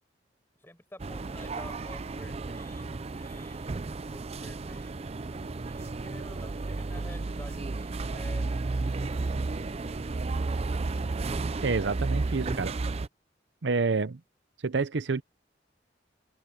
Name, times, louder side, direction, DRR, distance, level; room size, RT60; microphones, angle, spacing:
voice 1, 0.6-3.9 4.1-5.1 5.6-9.2, left 1 dB, 15° left, 6.2 m, -51 dB
sound 1, 1.0-13.1, right 3 dB, 35° right, 0.5 m, -33 dB
voice 2, 11.4-12.7 13.6-14.2 14.6-15.2, right 4 dB, 75° right, 0.7 m, -28 dB
open air
head